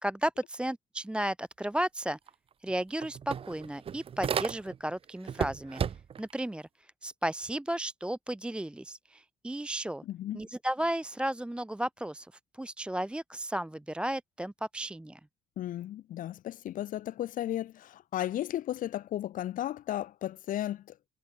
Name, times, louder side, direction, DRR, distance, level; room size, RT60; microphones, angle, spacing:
voice 1, 0.0-2.2 2.6-5.8 6.2-10.0 10.3-12.3 12.6-15.2, right 1 dB, 5° right, 0.9 m, -34 dB
sound 1, 2.3-2.4 2.7-4.9 5.3-6.3, right 8 dB, 35° right, 0.6 m, -34 dB
voice 2, 10.1-10.4 15.6-21.0, left 12 dB, 55° left, 0.6 m, -34 dB
cardioid pair, 110°, 17 cm